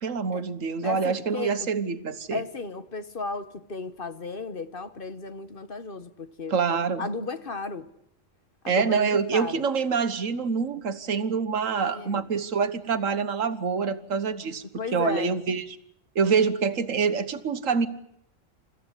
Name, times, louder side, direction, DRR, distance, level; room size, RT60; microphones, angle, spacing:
voice 1, 0.0-2.4 6.5-7.1 8.7-14.6 14.9-15.7 16.1-17.9, right 5 dB, 80° right, 1.7 m, -26 dB
voice 2, 0.8-1.7 2.3-7.9 8.6-9.6 11.8-12.3 14.8-15.3, left 3 dB, 45° left, 1.3 m, -34 dB
29.0 x 14.5 x 9.8 m
omnidirectional pair, 1.3 m